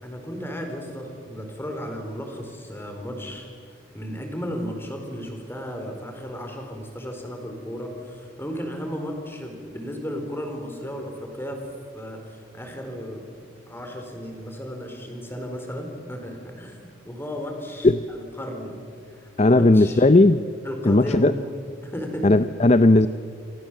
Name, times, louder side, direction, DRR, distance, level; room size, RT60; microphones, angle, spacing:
voice 1, 0.0-3.5 3.9-11.6 11.9-13.3 13.7-18.8 19.1-20.1 20.6-22.3, equal, 10° left, 3 dB, 4.4 m, -34 dB
voice 2, 19.4-20.4 20.8-21.3 22.2-23.1, left 2 dB, 35° left, 12 dB, 0.6 m, -16 dB
28.5 x 26.5 x 7.6 m, 2.2 s
head